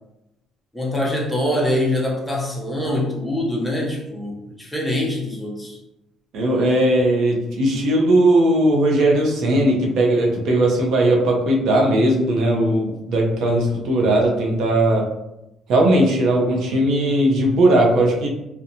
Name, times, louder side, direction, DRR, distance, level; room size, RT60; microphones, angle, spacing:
voice 1, 0.7-5.8, left 1 dB, 5° left, -3 dB, 0.5 m, -24 dB
voice 2, 6.3-15.1 15.7-18.3, right 1 dB, 65° right, -1 dB, 0.6 m, -18 dB
2.8 x 2.1 x 2.6 m, 0.89 s
cardioid pair, 140°, 0 cm